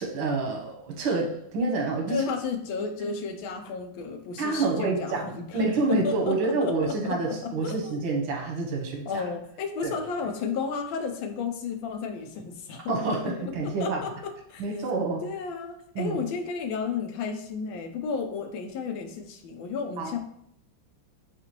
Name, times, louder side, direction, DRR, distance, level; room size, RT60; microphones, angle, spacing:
voice 1, 0.0-2.2 4.4-9.2 9.8-10.0 12.9-14.0 14.6-15.3 16.0-16.2 20.0-20.1, right 3 dB, 90° right, 0 dB, 1.7 m, -28 dB
voice 2, 2.1-5.6 5.9-8.0 9.1-13.3 13.6-14.6 15.2-20.2, left 5 dB, 80° left, 5 dB, 1.4 m, -33 dB
6.6 x 2.6 x 2.9 m, 0.71 s
omnidirectional pair, 2.2 m